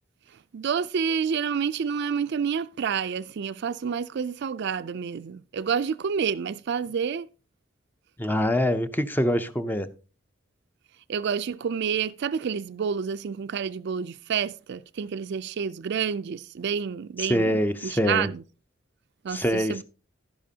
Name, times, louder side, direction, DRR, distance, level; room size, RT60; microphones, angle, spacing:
voice 1, 0.5-7.3 11.1-18.4 19.2-19.8, right 7 dB, 60° right, 0.4 m, -29 dB
voice 2, 8.2-9.9 17.2-18.3 19.3-19.8, equal, 10° left, 0.5 m, -24 dB
11.5 x 10.0 x 2.8 m
head